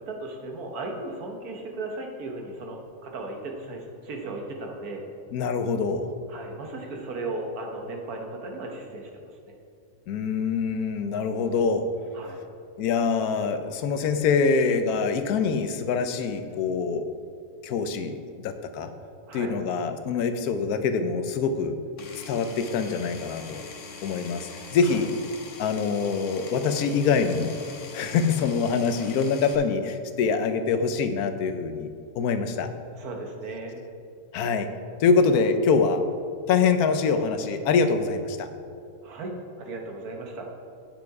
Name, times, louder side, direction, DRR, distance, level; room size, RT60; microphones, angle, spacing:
voice 1, 0.1-5.0 6.3-9.2 12.1-12.4 19.3-19.6 24.8-25.1 32.9-33.8 39.0-40.5, right 2 dB, 80° right, 2 dB, 1.6 m, -36 dB
voice 2, 5.3-6.1 10.1-11.9 12.8-17.1 17.6-18.1 18.4-18.9 19.3-21.8 22.3-23.6 24.0-25.1 25.6-27.5 27.9-31.9 32.2-32.7 34.3-34.7 35.0-36.0 36.5-38.5, left 5 dB, 80° left, 9 dB, 1.2 m, -24 dB
Power tool, 22.0-29.6, left 4 dB, 55° left, 1.2 m, -43 dB
9.3 x 7.1 x 4.7 m, 2.4 s
omnidirectional pair, 1.6 m